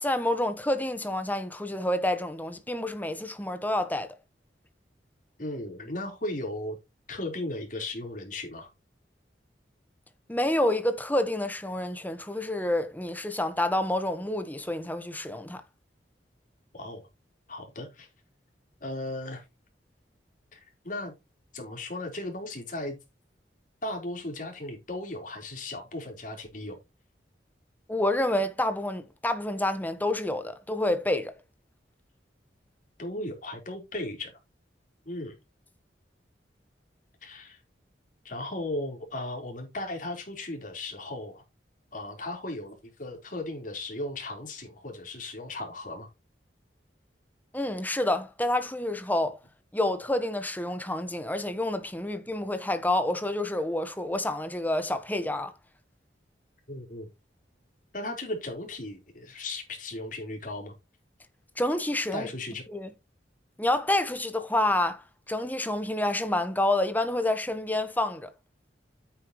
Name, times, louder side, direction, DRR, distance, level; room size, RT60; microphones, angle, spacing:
voice 1, 0.0-4.1 10.3-15.6 27.9-31.3 47.5-49.4 49.7-55.5 61.6-62.3 62.7-62.9 63.6-68.3, left 1 dB, 10° left, 1.3 m, -28 dB
voice 2, 5.4-6.8 7.1-8.7 16.7-17.1 17.5-18.1 18.8-19.4 20.5-21.1 21.5-23.0 23.8-26.8 33.0-34.3 35.0-35.3 37.2-37.6 38.2-41.4 41.9-46.1 56.7-57.1 57.9-60.7 62.1-62.6, left 2 dB, 50° left, 4.3 m, -36 dB
10.0 x 9.0 x 3.2 m
head